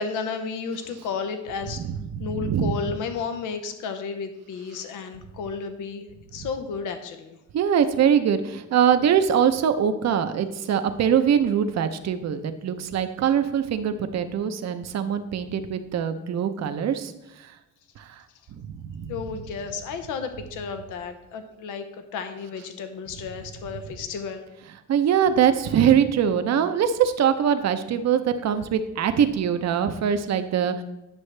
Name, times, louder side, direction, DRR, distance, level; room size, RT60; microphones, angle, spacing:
voice 1, 0.0-1.8 2.2-6.0 6.3-7.4 19.1-21.8 22.1-24.5, left 5 dB, 85° left, 8 dB, 0.8 m, -32 dB
voice 2, 1.8-2.8 6.4-6.5 7.5-17.1 18.0-18.1 18.6-19.1 24.9-30.8, right 8 dB, 60° right, 9 dB, 0.8 m, -23 dB
9.9 x 6.1 x 3.3 m, 0.95 s
cardioid pair, 90°, 30 cm